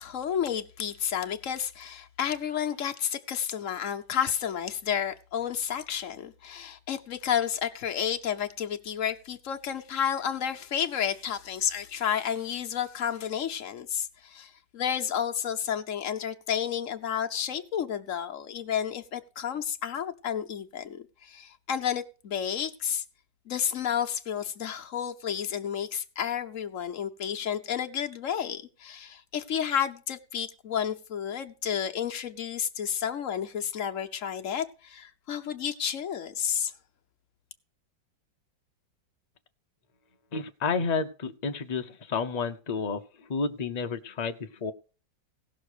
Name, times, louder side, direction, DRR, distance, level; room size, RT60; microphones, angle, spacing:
voice 1, 0.0-23.0 23.5-36.7, left 8 dB, 50° left, 1.1 m, -31 dB
voice 2, 40.3-44.7, left 4 dB, 80° left, 0.3 m, -31 dB
17.0 x 6.3 x 5.0 m
omnidirectional pair, 2.0 m